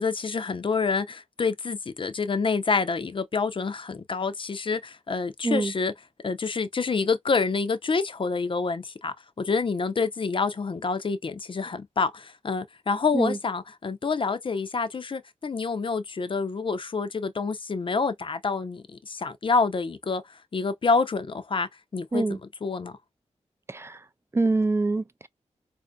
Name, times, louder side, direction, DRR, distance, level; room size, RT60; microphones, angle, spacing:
voice 1, 0.0-5.9 6.2-20.2 20.5-22.2 22.6-22.9, left 4 dB, 45° left, 0.6 m, -27 dB
voice 2, 23.7-24.0 24.3-25.3, right 3 dB, 20° right, 0.4 m, -25 dB
4.2 x 2.6 x 2.2 m
wide cardioid pair, 80°, 12 cm